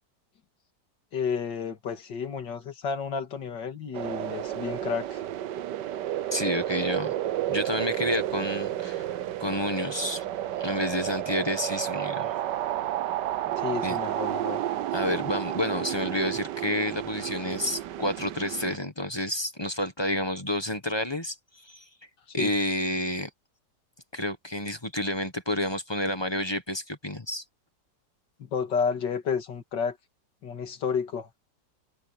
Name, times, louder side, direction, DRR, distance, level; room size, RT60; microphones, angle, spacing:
voice 1, 1.1-5.2 13.6-14.6 22.4-22.5 28.4-30.0 30.4-31.3, left 6 dB, 85° left, 2.6 m, -31 dB
sound 1, 3.9-18.8, right 12 dB, 75° right, 1.4 m, -31 dB
voice 2, 6.3-7.1 7.5-9.1 9.4-10.2 10.6-12.3 13.8-14.0 14.9-21.3 21.6-21.8 22.3-23.3 24.1-27.4, left 1 dB, 15° left, 1.2 m, -29 dB
omnidirectional pair, 1.9 m